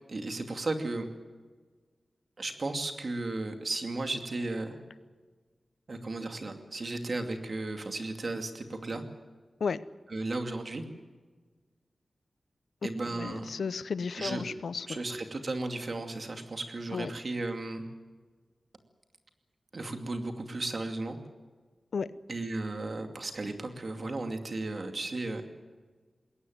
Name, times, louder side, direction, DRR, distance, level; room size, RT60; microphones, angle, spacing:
voice 1, 0.1-1.1 2.4-4.8 5.9-9.0 10.1-10.8 12.8-13.5 14.1-14.4 14.9-17.9 19.7-21.2 22.3-25.4, right 2 dB, 50° right, 6 dB, 2.5 m, -35 dB
voice 2, 13.1-14.9 16.9-17.1 21.9-22.1, left 5 dB, 90° left, 16 dB, 0.7 m, -33 dB
21.0 x 18.0 x 9.4 m, 1.4 s
wide cardioid pair, 115°, 0 cm